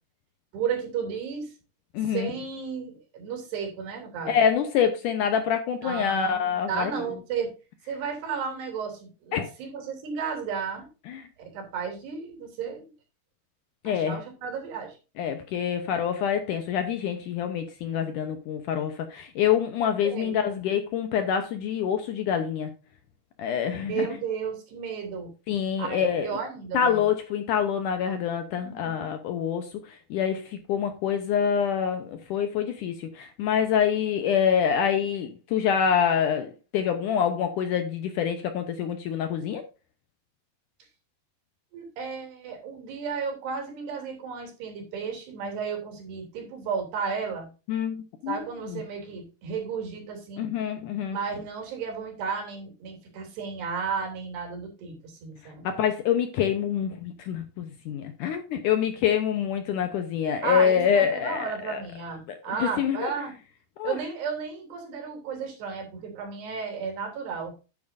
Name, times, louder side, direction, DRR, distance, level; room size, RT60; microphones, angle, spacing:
voice 1, 0.5-1.5 2.1-4.4 5.8-7.5 7.9-10.9 11.4-12.9 13.8-14.9 20.0-20.7 23.9-25.3 25.8-27.0 28.6-29.1 41.7-47.5 48.3-50.5 51.1-55.7 60.4-63.3 63.8-67.5, right 6 dB, 90° right, 2 dB, 5.1 m, -33 dB
voice 2, 1.9-2.3 4.3-7.1 9.3-9.5 11.1-11.2 13.8-14.2 15.2-22.7 23.4-24.1 25.5-26.4 26.7-39.6 47.7-48.4 48.7-48.8 50.4-51.2 55.6-61.8 62.3-63.1 63.8-64.0, left 8 dB, 75° left, 7 dB, 2.0 m, -26 dB
9.9 x 9.6 x 2.6 m, 0.31 s
omnidirectional pair, 4.6 m